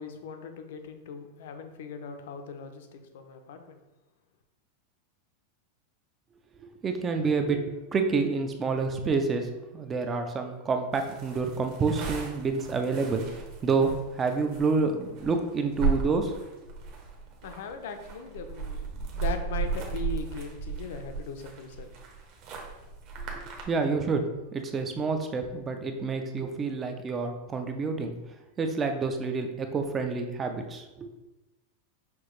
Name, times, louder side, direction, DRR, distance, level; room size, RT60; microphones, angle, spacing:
voice 1, 0.0-3.8 17.4-21.9, left 5 dB, 65° left, 7 dB, 0.5 m, -39 dB
voice 2, 6.8-7.6 7.9-16.4 23.3-24.2 24.5-28.1 28.6-31.1, right 4 dB, 15° right, 5 dB, 0.3 m, -28 dB
sound 1, 10.9-23.6, right 5 dB, 35° right, 0.8 m, -35 dB
5.8 x 2.8 x 3.1 m, 1.0 s
supercardioid pair, 175°, 0 cm